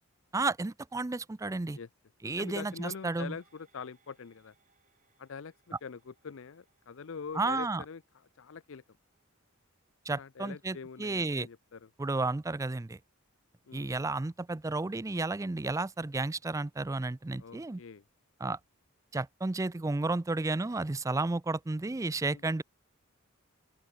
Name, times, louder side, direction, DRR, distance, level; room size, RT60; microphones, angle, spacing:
voice 1, 0.3-1.8 2.2-3.3 7.3-7.8 10.1-11.5 12.0-13.0 13.7-17.8 18.4-18.6 19.1-22.6, right 3 dB, 15° right, 0.4 m, -32 dB
voice 2, 2.2-4.5 5.2-5.5 5.8-8.0 8.3-8.8 10.1-11.9 13.7-13.9 17.4-18.0 22.3-22.4, left 5 dB, 65° left, 0.5 m, -44 dB
sound 1, 2.4-11.1 11.5-11.6, right 6 dB, 35° right, 8.0 m, -71 dB
open air
head